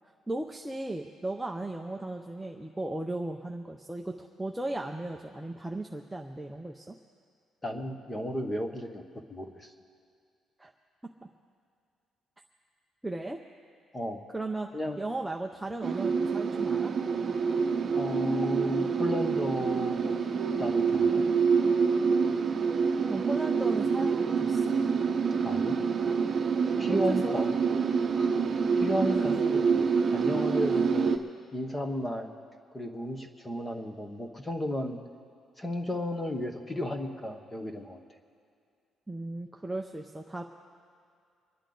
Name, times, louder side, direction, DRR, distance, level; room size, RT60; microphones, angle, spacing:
voice 1, 0.3-6.9 10.6-10.7 13.0-13.4 14.3-16.9 23.1-24.7 27.1-27.4 29.1-29.2 39.1-40.4, right 2 dB, 5° right, 2 dB, 0.5 m, -36 dB
voice 2, 7.6-9.0 9.3-9.7 13.9-14.2 14.7-15.0 17.9-20.1 20.6-21.2 25.4-25.8 26.8-27.5 28.1-28.4 28.8-31.1 31.5-32.3 32.7-35.0 35.6-38.0, left 1 dB, 10° left, 5 dB, 1.0 m, -33 dB
sound 1, 15.8-31.2, right 5 dB, 35° right, 0.9 m, -27 dB
25.0 x 10.5 x 3.9 m, 2.3 s
cardioid pair, 170°, 0 cm